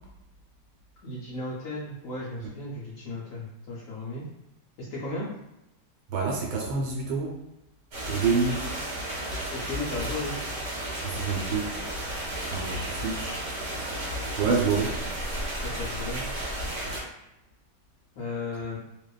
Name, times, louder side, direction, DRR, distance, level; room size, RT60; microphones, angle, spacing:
voice 1, 1.0-4.2 4.8-5.3 9.5-10.3 14.4-14.8 15.6-16.2 18.2-18.8, left 2 dB, 70° left, -6 dB, 0.8 m, -35 dB
voice 2, 6.1-7.4 8.1-8.6 11.0-11.8 12.5-13.3 14.4-14.9, right 5 dB, 85° right, -1 dB, 1.3 m, -27 dB
sound 1, 7.9-17.0, right 1 dB, 55° right, 1.1 m, -33 dB
2.7 x 2.2 x 2.3 m, 0.89 s
omnidirectional pair, 1.9 m